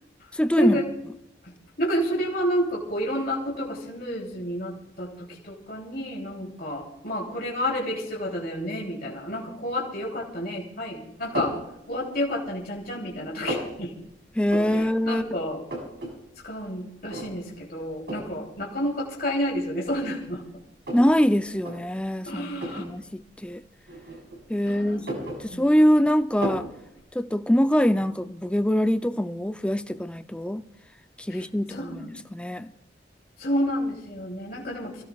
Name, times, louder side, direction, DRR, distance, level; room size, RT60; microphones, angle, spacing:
voice 1, 0.3-0.8 14.4-15.3 20.9-23.6 24.5-25.0 25.4-26.7 27.1-30.6 31.2-32.0 32.3-32.7, equal, 5° left, 0.4 m, -23 dB
voice 2, 1.4-11.6 11.9-13.9 14.7-15.6 16.4-20.4 22.3-22.8 24.6-25.1 25.5-25.6 31.3-31.4 31.7-32.1 33.4-35.0, equal, 50° left, 3.1 m, -30 dB
sound 1, 11.3-11.7 12.2-12.8 13.1-13.7 14.5-14.9 15.2-15.3 15.5-16.1 16.4-16.5 17.1-17.6 18.1-18.3 19.2-19.3 19.8-21.1 21.5-21.8 22.5-22.9 23.9-24.5 24.9-25.9 26.4-26.7, right 1 dB, 60° right, 6.6 m, -33 dB
28.5 x 16.0 x 2.4 m
head